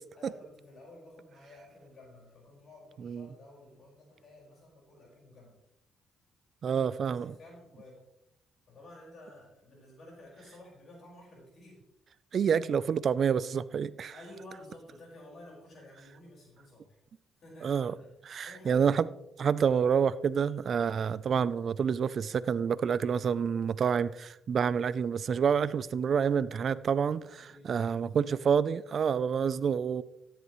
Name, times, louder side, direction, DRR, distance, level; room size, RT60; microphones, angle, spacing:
voice 1, 0.1-5.5 7.1-8.0 8.7-11.8 14.1-17.0 17.3-18.8 27.4-28.6 29.3-29.6, left 1 dB, 55° left, 5.1 m, -53 dB
voice 2, 6.6-7.3 12.3-14.1 17.6-17.9 18.3-19.1 19.4-30.0, right 7 dB, 55° right, 0.5 m, -28 dB
13.5 x 10.0 x 3.1 m
cardioid pair, 90°, 0 cm